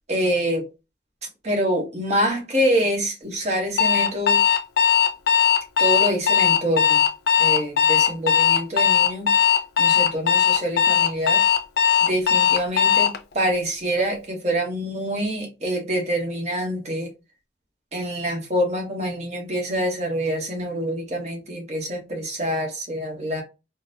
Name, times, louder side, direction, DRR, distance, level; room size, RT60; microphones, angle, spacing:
voice 1, 0.1-0.7 1.4-4.4 5.8-7.0 7.4-9.5 9.8-11.4 12.1-13.1 13.3-17.1 17.9-23.4, equal, 40° right, 1.0 m, -26 dB
Alarm, 3.8-13.2, left 8 dB, 60° left, 0.4 m, -18 dB
3.8 x 2.0 x 2.6 m
head